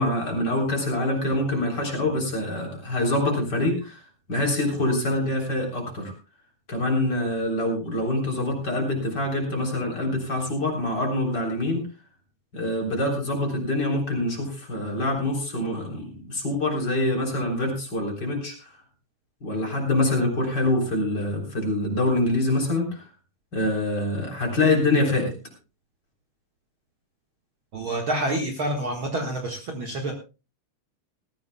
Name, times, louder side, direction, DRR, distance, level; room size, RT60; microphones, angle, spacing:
voice 1, 0.0-4.0 4.3-6.1 6.7-11.8 12.5-18.7 19.4-23.1 23.5-25.3, left 1 dB, 30° left, 1 dB, 4.0 m, -25 dB
voice 2, 27.7-30.1, right 1 dB, 45° right, 2 dB, 2.1 m, -28 dB
20.0 x 14.5 x 2.3 m, 0.31 s
omnidirectional pair, 3.6 m